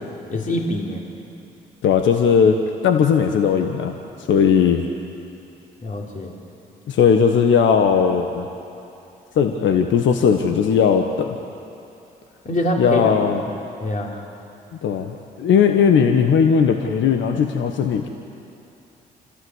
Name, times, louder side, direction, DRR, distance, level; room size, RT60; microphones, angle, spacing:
voice 1, 0.3-1.1 5.8-6.3 12.4-13.1 13.8-14.1, left 1 dB, 40° left, -1 dB, 3.7 m, -24 dB
voice 2, 1.8-2.6 2.8-4.0 4.3-4.9 6.9-8.5 9.3-11.3 12.8-13.4 14.8-18.1, left 7 dB, 70° left, 4 dB, 1.3 m, -17 dB
27.0 x 14.5 x 8.1 m, 2.7 s
hypercardioid pair, 50°, 20 cm